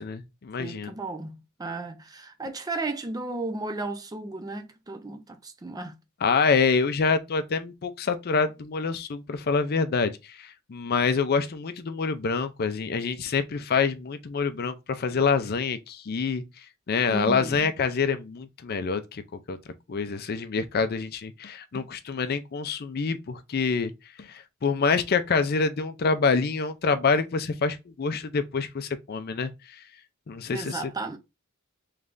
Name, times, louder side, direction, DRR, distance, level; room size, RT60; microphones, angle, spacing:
voice 1, 0.0-0.9 6.2-16.4 16.9-19.2 19.5-19.6 19.9-23.9 24.2-29.5 30.3-30.8, left 5 dB, 45° left, 0.4 m, -26 dB
voice 2, 0.6-6.0 17.1-17.7 30.5-31.2, right 2 dB, 15° right, 0.4 m, -34 dB
3.6 x 3.2 x 2.5 m
head